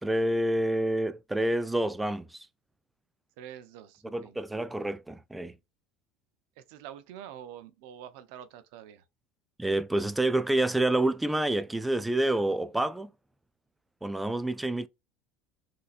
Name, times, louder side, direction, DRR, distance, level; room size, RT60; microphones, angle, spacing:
voice 1, 0.0-2.5 4.1-5.6 9.6-13.1 14.0-14.9, right 1 dB, 5° right, 0.3 m, -28 dB
voice 2, 3.4-4.4 6.6-9.0, right 10 dB, 75° right, 0.6 m, -46 dB
4.0 x 2.8 x 2.4 m
supercardioid pair, 120°, 0 cm